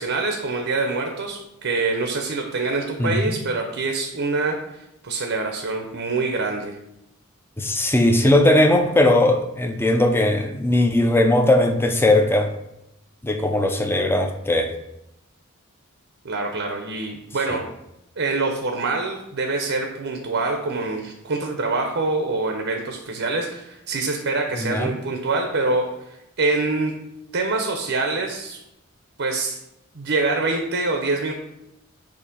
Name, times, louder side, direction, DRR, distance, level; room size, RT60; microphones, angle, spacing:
voice 1, 0.0-4.6 5.0-6.8 16.2-17.7 18.2-26.9 27.3-28.6 29.2-29.6 29.9-31.3, right 3 dB, 60° right, 3 dB, 0.7 m, -25 dB
voice 2, 3.0-3.4 7.6-12.5 13.2-14.7 17.5-17.6 24.5-24.9, left 1 dB, 10° left, 4 dB, 0.6 m, -19 dB
7.0 x 2.8 x 5.2 m, 0.86 s
head